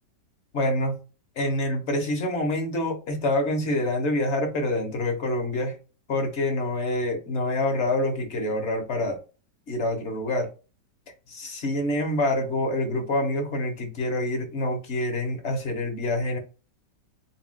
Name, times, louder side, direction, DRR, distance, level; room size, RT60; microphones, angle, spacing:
voice 1, 0.5-1.0 1.4-5.7 6.1-9.2 9.7-10.5 11.3-16.4, left 1 dB, 45° left, 1.2 m, -26 dB
7.3 x 2.5 x 2.2 m
omnidirectional pair, 1.9 m